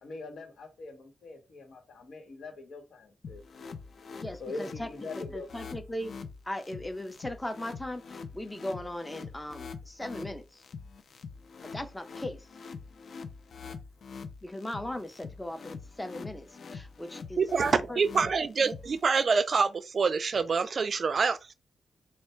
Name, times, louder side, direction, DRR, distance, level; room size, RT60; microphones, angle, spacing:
voice 1, 0.0-3.4 4.4-5.7, left 3 dB, 80° left, 1.3 m, -43 dB
sound 1, 3.2-19.2, left 5 dB, 60° left, 0.5 m, -44 dB
voice 2, 4.2-4.9 5.1-6.1 6.5-10.6 11.6-12.5 14.4-17.4 17.9-18.3, left 1 dB, 10° left, 0.5 m, -38 dB
voice 3, 17.4-21.5, right 5 dB, 50° right, 0.3 m, -26 dB
3.3 x 2.3 x 4.3 m
wide cardioid pair, 135°, 0 cm